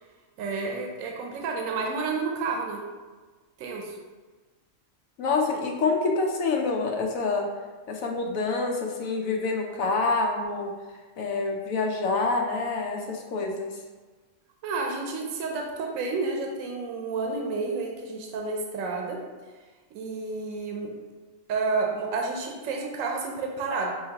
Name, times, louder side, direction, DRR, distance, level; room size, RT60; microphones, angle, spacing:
voice 1, 0.4-2.8 3.6-4.0 14.6-19.2 19.9-20.9 21.5-23.9, right 4 dB, 80° right, 0 dB, 1.0 m, -30 dB
voice 2, 5.2-7.5 7.9-10.7 11.2-13.7, left 3 dB, 80° left, 2 dB, 1.1 m, -27 dB
5.7 x 2.9 x 2.8 m, 1.3 s
omnidirectional pair, 1.4 m